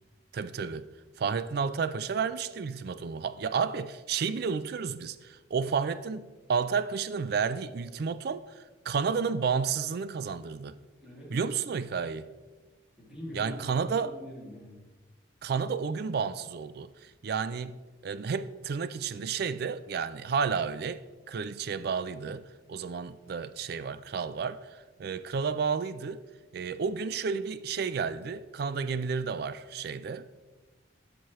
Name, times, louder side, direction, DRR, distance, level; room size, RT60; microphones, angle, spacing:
voice 1, 0.3-0.9 1.2-10.8 11.3-12.3 13.3-14.1 15.4-17.7 18.0-26.2 26.5-30.4, right 5 dB, 55° right, 0.4 m, -31 dB
voice 2, 13.0-14.8, equal, 5° right, 2.5 m, -44 dB
12.5 x 6.1 x 3.1 m
head